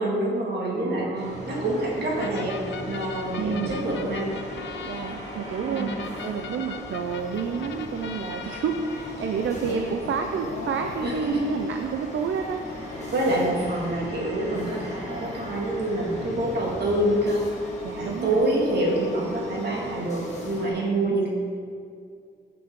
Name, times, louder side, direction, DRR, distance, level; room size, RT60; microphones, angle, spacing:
voice 1, 0.0-2.6 2.9-4.3 5.7-5.9 11.0-11.4 13.1-17.4 17.9-21.3, right 1 dB, 55° right, -3 dB, 2.2 m, -26 dB
voice 2, 0.8-1.4 3.4-3.8 4.8-12.6 17.8-18.4 20.7-21.3, right 6 dB, 75° right, 4 dB, 0.6 m, -30 dB
sound 1, 1.1-20.7, left 1 dB, 35° left, 1.7 m, -39 dB
sound 2, 2.2-12.5, left 7 dB, 65° left, 0.6 m, -41 dB
sound 3, 2.9-19.3, right 1 dB, 30° right, 2.0 m, -45 dB
14.5 x 6.0 x 3.7 m, 2.3 s
wide cardioid pair, 180°, 20 cm